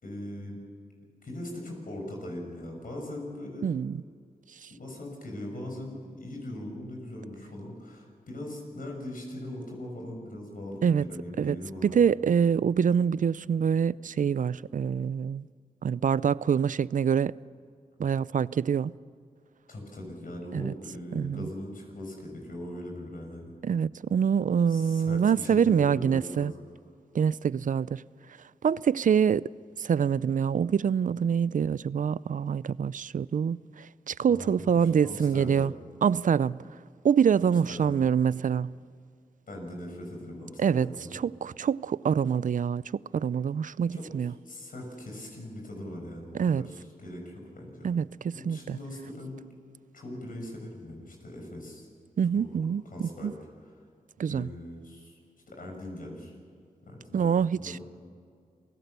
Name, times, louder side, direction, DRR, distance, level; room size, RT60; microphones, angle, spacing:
voice 1, 0.0-0.6 1.2-3.7 4.7-12.0 19.7-23.5 24.7-26.5 34.3-35.7 37.4-38.0 39.5-41.2 43.9-44.1 44.5-47.9 48.3-49.4 49.9-51.9 52.3-52.5 52.9-53.3 54.3-55.2 55.5-56.3 56.8-57.8, left 1 dB, 65° left, 6.9 m, -40 dB
voice 2, 3.6-4.0 10.8-11.0 11.4-11.6 11.8-15.5 15.8-17.3 18.0-18.9 20.5-20.7 21.1-21.5 23.6-26.5 27.1-28.0 28.6-29.5 29.8-35.7 36.0-36.6 37.0-38.7 40.6-40.9 41.1-42.8 43.1-44.3 46.3-46.6 47.8-48.8 52.2-53.3 54.2-54.5 57.1-57.8, right 7 dB, 60° right, 0.5 m, -25 dB
28.0 x 17.5 x 6.8 m
cardioid pair, 50°, 15 cm